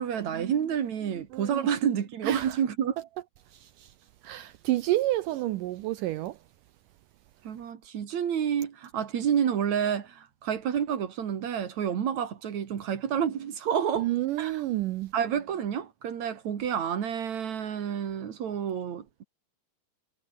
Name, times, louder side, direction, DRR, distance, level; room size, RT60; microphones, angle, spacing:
voice 1, 0.0-3.0 7.4-14.1 14.4-14.6 15.1-19.2, right 8 dB, 50° right, 2.8 m, -29 dB
voice 2, 1.3-1.7 2.2-2.5 3.6-3.9 4.2-6.4 14.0-15.1, right 16 dB, 85° right, 1.8 m, -29 dB
omnidirectional pair, 4.8 m